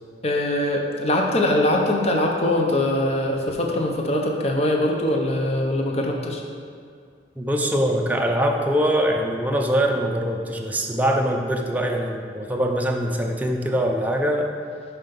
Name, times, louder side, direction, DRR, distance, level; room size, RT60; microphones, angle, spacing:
voice 1, 0.2-6.4, left 1 dB, 35° left, 1 dB, 0.7 m, -22 dB
voice 2, 7.4-14.5, equal, 10° right, 1 dB, 0.6 m, -23 dB
5.7 x 5.7 x 5.3 m, 2.2 s
head